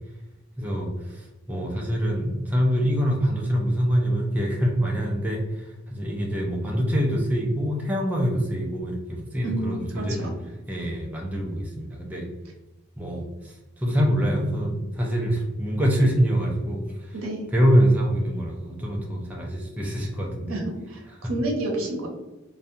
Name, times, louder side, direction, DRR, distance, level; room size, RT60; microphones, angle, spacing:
voice 1, 0.6-0.9 1.5-5.4 5.9-10.3 10.7-12.3 13.0-13.3 13.8-16.8 17.5-20.6 21.2-21.3, equal, 10° right, -2 dB, 0.3 m, -24 dB
voice 2, 9.4-10.3 17.1-17.5 20.5-22.1, right 1 dB, 90° right, 0 dB, 0.7 m, -30 dB
2.5 x 2.2 x 2.6 m, 1.1 s
head